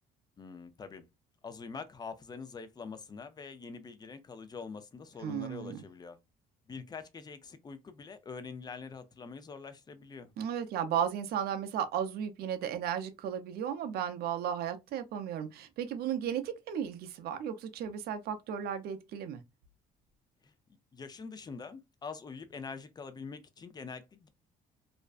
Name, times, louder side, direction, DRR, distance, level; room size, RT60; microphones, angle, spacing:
voice 1, 0.4-1.1 1.4-6.2 6.7-10.3 20.4-20.5 20.9-24.3, left 5 dB, 25° left, 0.4 m, -44 dB
voice 2, 5.2-5.8 10.4-19.4, right 9 dB, 65° right, 0.5 m, -35 dB
2.5 x 2.1 x 2.3 m
cardioid pair, 110°, 17 cm